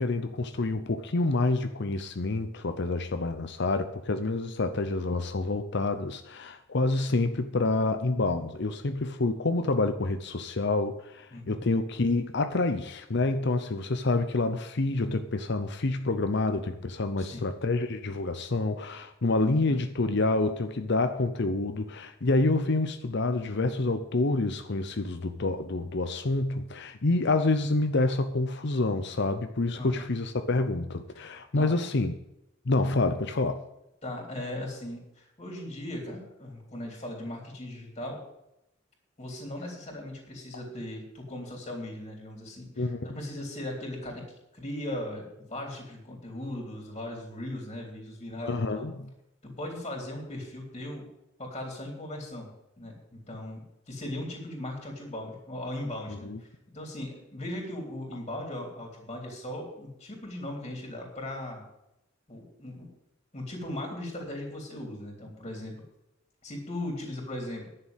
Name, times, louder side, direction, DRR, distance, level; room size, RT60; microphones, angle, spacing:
voice 1, 0.0-32.1 32.7-33.6 42.8-43.1 48.4-49.1 56.1-56.4, left 2 dB, 60° left, 0.8 m, -28 dB
voice 2, 29.7-30.1 31.2-31.3 31.6-31.7 34.0-38.2 39.2-44.2 44.5-48.8 49.4-51.1 51.4-52.5 52.8-53.6 53.9-56.5 56.7-61.6 62.3-62.9 63.3-65.7 66.4-67.7, left 1 dB, 30° left, 3.7 m, -38 dB
11.0 x 6.8 x 9.0 m
head